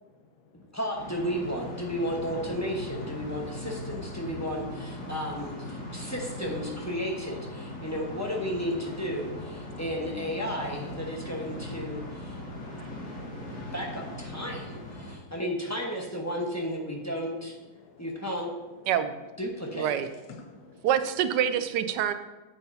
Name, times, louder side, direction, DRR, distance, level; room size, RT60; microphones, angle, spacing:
voice 1, 0.0-0.7 5.8-6.1 7.8-7.9 9.7-9.8 11.4-13.7 14.3-15.4 16.9-17.1 17.7-18.3 18.8-18.9 20.0-20.9 21.9-22.1, left 4 dB, 70° left, 2 dB, 1.3 m, -54 dB
voice 2, 0.5-12.4 13.7-17.6 18.0-18.5 19.4-19.9, equal, 10° left, -1 dB, 0.9 m, -33 dB
sound 1, 0.9-15.2, left 1 dB, 90° left, 2.4 m, -39 dB
voice 3, 19.7-20.1 20.8-22.1, right 9 dB, 90° right, 10 dB, 1.2 m, -26 dB
9.4 x 7.9 x 2.8 m, 1.1 s
omnidirectional pair, 1.8 m